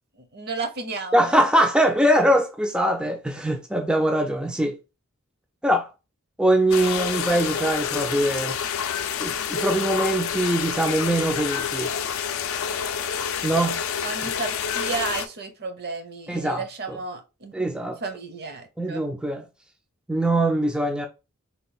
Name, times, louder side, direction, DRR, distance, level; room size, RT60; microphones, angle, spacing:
voice 1, 0.3-1.4 14.0-17.5 18.0-19.0, right 4 dB, 50° right, 0.7 m, -33 dB
voice 2, 1.1-4.8 5.6-5.9 6.4-8.6 9.2-11.9 13.4-13.8 16.3-16.6 16.9-17.0 17.5-18.0 18.8-19.5 20.1-21.1, right 1 dB, 5° right, 0.3 m, -22 dB
sound 1, 6.7-15.3, left 7 dB, 65° left, 0.4 m, -28 dB
3.4 x 2.3 x 4.1 m
head